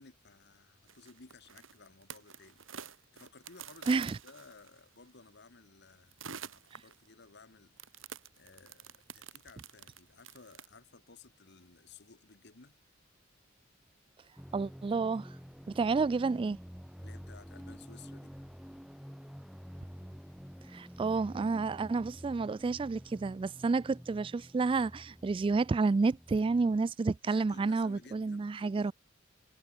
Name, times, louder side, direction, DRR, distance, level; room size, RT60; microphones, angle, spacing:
voice 1, 0.0-2.6 3.1-8.0 8.4-12.8 15.8-16.0 17.0-18.3 27.2-28.9, left 4 dB, 60° left, 1.6 m, -56 dB
sound 1, 0.9-5.0 6.1-7.1 7.8-10.7, right 7 dB, 80° right, 3.1 m, -48 dB
voice 2, 3.9-4.2 14.5-15.3 15.7-16.6 20.7-28.9, right 4 dB, 25° right, 0.3 m, -30 dB
sound 2, 14.4-26.8, equal, ahead, 2.6 m, -49 dB
head